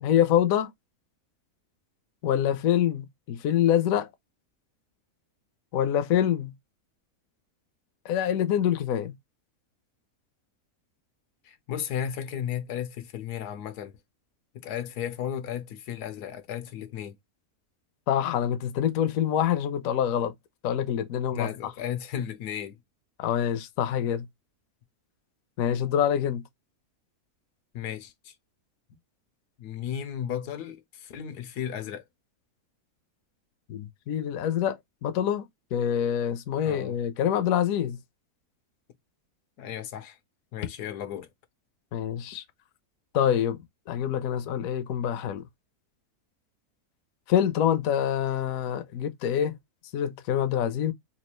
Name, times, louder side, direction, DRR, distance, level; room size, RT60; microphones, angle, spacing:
voice 1, 0.0-0.7 2.2-4.1 5.7-6.5 8.0-9.1 18.1-20.3 20.6-21.5 23.2-24.3 25.6-26.4 33.7-35.5 35.7-38.0 41.9-42.4 43.1-45.4 47.3-49.5 49.9-50.9, left 10 dB, 70° left, 0.9 m, -26 dB
voice 2, 11.4-14.0 14.5-17.1 21.3-22.8 27.7-28.3 29.6-32.1 36.6-37.0 39.6-40.2 40.5-41.3, left 9 dB, 90° left, 1.3 m, -34 dB
4.2 x 2.4 x 3.0 m
omnidirectional pair, 1.6 m